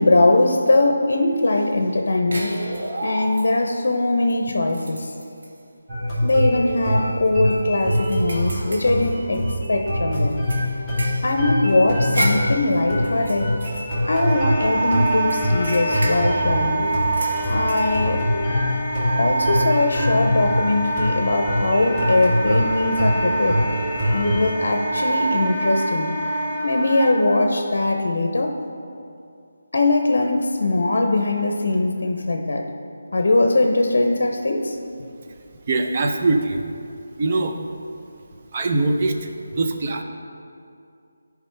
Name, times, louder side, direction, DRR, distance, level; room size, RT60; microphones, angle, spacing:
voice 1, 0.0-2.7 3.0-5.1 6.2-10.4 11.2-13.6 14.1-16.9 17.5-18.3 19.2-23.6 24.1-26.1 26.6-28.6 29.7-32.7 33.1-34.8, left 2 dB, 65° left, 4 dB, 0.7 m, -21 dB
sound 1, 2.3-3.8 4.3-4.4 4.7-5.6 6.1-6.3 6.7-6.8 7.3-9.7 10.1-14.6 15.1-17.8, right 1 dB, 70° right, 1.4 m, -33 dB
sound 2, 5.9-24.5, equal, 5° right, 1.9 m, -24 dB
Wind instrument woodwind instrument, 14.1-27.1, right 2 dB, 20° right, 1.2 m, -26 dB
voice 2, 35.7-36.6 37.2-37.5 38.5-40.0, right 2 dB, 35° right, 4 dB, 0.6 m, -22 dB
13.0 x 5.0 x 3.3 m, 2.5 s
figure-of-eight pair, 165°, 0 cm